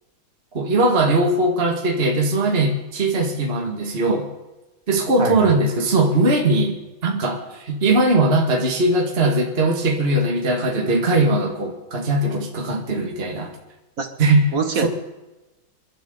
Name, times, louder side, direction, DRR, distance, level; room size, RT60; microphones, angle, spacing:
voice 1, 0.5-4.3 4.9-13.5 14.2-14.5 14.8-14.9, right 2 dB, 30° right, 1 dB, 2.0 m, -20 dB
voice 2, 5.2-5.5 14.0-14.1 14.5-14.9, right 5 dB, 45° right, 6 dB, 1.8 m, -23 dB
29.0 x 12.0 x 3.9 m, 1.0 s
omnidirectional pair, 2.2 m